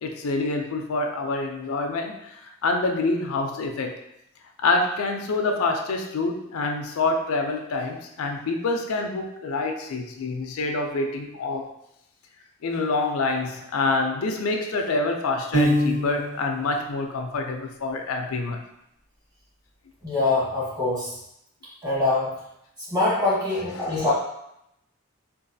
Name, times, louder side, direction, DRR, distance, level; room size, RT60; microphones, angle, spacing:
voice 1, 0.0-4.0 4.6-11.7 12.6-18.6 23.8-24.1, left 3 dB, 90° left, 4 dB, 0.4 m, -26 dB
Piano, 15.5-16.5, equal, 50° right, 0.9 m, -22 dB
voice 2, 20.0-21.1 21.8-22.3 22.9-24.1, left 2 dB, 20° right, -7 dB, 1.0 m, -23 dB
3.9 x 2.4 x 2.6 m, 0.80 s
head